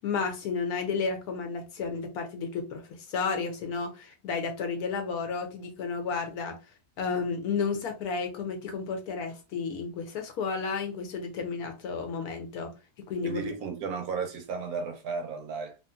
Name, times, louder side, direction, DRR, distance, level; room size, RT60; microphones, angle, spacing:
voice 1, 0.0-6.6 7.0-12.7 13.1-13.5, left 5 dB, 70° left, 1.0 m, -32 dB
voice 2, 13.2-15.8, right 5 dB, 70° right, 1.0 m, -34 dB
2.9 x 2.6 x 2.2 m
omnidirectional pair, 1.8 m